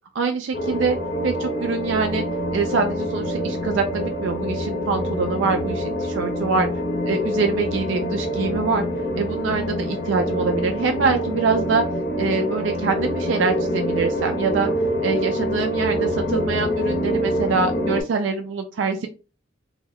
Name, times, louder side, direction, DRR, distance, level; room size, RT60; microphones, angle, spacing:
voice 1, 0.1-1.0 1.2-2.2 2.5-6.7 7.1-8.8 9.2-11.8 12.2-14.7 15.0-19.1, right 4 dB, 75° right, 5 dB, 0.3 m, -24 dB
sound 1, 0.5-18.0, equal, 55° left, 0.6 m, -25 dB
2.2 x 2.0 x 3.3 m, 0.34 s
head